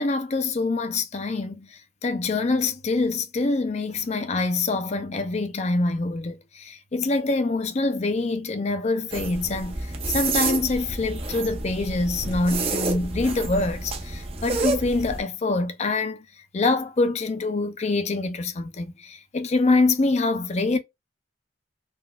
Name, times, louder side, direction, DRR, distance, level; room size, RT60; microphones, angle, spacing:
voice 1, 0.0-16.2 16.5-20.8, left 3 dB, 35° left, 0.4 m, -25 dB
sound 1, 9.1-15.2, right 3 dB, 30° right, 0.5 m, -29 dB
3.8 x 2.3 x 2.2 m
head